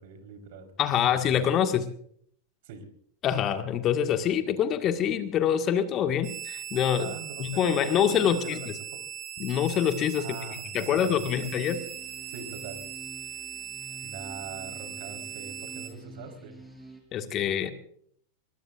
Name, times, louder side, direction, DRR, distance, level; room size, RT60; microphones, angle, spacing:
voice 1, 0.0-0.7 2.6-2.9 7.0-9.0 10.2-11.4 12.3-12.9 14.0-16.5, right 5 dB, 50° right, 6 dB, 4.2 m, -42 dB
voice 2, 0.8-1.9 3.2-7.1 7.4-8.6 9.4-10.3 10.7-11.8 17.1-17.7, left 9 dB, 30° left, 8 dB, 1.8 m, -25 dB
sound 1, 6.2-15.9, right 10 dB, 35° right, 4.3 m, -39 dB
sound 2, 11.2-17.0, right 2 dB, 5° right, 5.3 m, -48 dB
23.5 x 22.5 x 2.5 m, 0.62 s
figure-of-eight pair, 90°, 0 cm